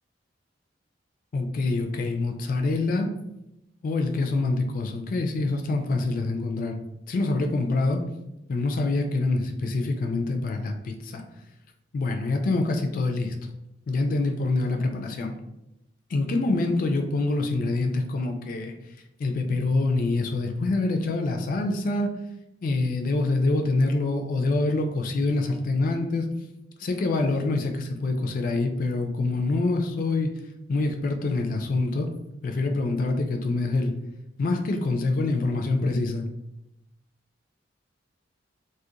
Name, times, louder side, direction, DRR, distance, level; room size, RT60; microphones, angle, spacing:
voice 1, 1.3-3.1 3.8-6.8 7.1-8.0 8.5-11.2 11.9-13.3 13.9-15.3 16.1-18.7 19.2-22.1 22.6-26.2 26.8-30.3 30.7-32.1 32.4-33.9 34.4-36.3, left 2 dB, 50° left, 4 dB, 0.3 m, -25 dB
2.7 x 2.0 x 2.4 m, 0.89 s
head